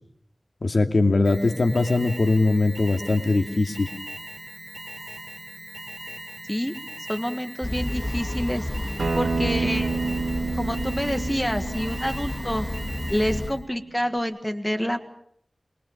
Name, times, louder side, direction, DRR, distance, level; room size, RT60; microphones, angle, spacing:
voice 1, 0.6-3.9, left 2 dB, 60° left, 6 dB, 2.5 m, -21 dB
Alarm, 1.2-13.6, right 1 dB, 20° right, 3.2 m, -40 dB
voice 2, 7.1-8.7 9.1-10.0 10.6-12.7 13.1-15.0, equal, 10° left, 8 dB, 1.7 m, -27 dB
sound 1, 7.6-13.5, left 1 dB, 25° left, 1.9 m, -31 dB
Acoustic guitar, 9.0-14.2, right 4 dB, 90° right, 1.7 m, -30 dB
26.5 x 23.0 x 7.3 m, 0.69 s
wide cardioid pair, 75°, 0 cm